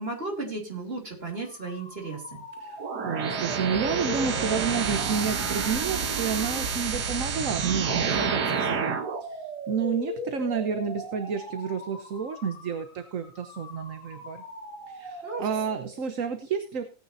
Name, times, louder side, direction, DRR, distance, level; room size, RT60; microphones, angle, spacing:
voice 1, 0.0-2.4 15.2-15.5, right 3 dB, 35° right, 0 dB, 3.6 m, -34 dB
sound 1, 1.4-16.0, equal, 50° left, 5.4 m, -40 dB
voice 2, 2.6-14.4 14.9-16.8, right 6 dB, 55° right, 8 dB, 1.3 m, -30 dB
sound 2, 2.8-9.2, right 5 dB, 75° right, 1.9 m, -29 dB
17.5 x 9.4 x 2.7 m, 0.35 s
omnidirectional pair, 1.8 m